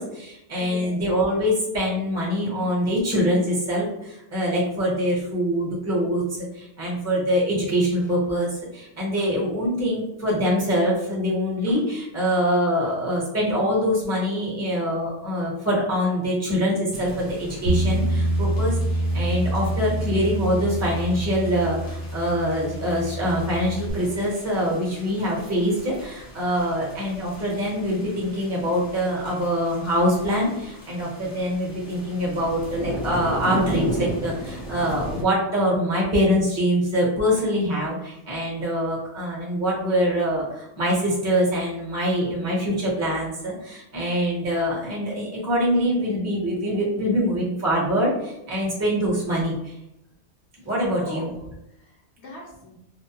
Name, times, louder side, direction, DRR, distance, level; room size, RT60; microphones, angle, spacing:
voice 1, 0.0-6.2 6.5-49.7 50.6-51.3, equal, 15° right, -4 dB, 0.8 m, -24 dB
voice 2, 0.6-1.0 50.8-52.7, equal, 60° left, -3 dB, 1.0 m, -41 dB
sound 1, 16.9-35.2, right 1 dB, 25° left, 0.5 m, -36 dB
Bass guitar, 17.7-23.9, right 1 dB, 70° right, 0.8 m, -26 dB
2.5 x 2.1 x 2.8 m, 0.84 s
omnidirectional pair, 1.3 m